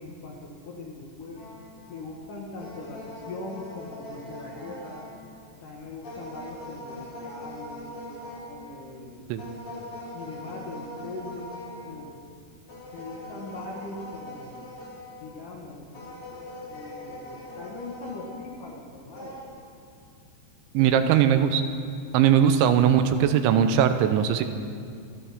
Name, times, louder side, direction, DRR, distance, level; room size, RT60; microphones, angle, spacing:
voice 1, 0.0-1.5 1.9-5.1 5.6-8.0 8.5-9.3 10.1-11.5 11.8-12.1 12.9-14.6 15.2-16.0 16.7-19.4 20.8-21.0, left 2 dB, 65° left, -2 dB, 2.2 m, -41 dB
sound 1, 1.4-2.1 2.6-5.5 6.0-9.0 9.4-12.0 12.7-15.4 15.9-18.6 19.2-19.4, left 1 dB, 50° left, 4.9 m, -42 dB
voice 2, 20.7-21.6 22.1-24.4, right 9 dB, 85° right, 8 dB, 2.9 m, -20 dB
25.5 x 13.0 x 3.6 m, 2.5 s
omnidirectional pair, 5.5 m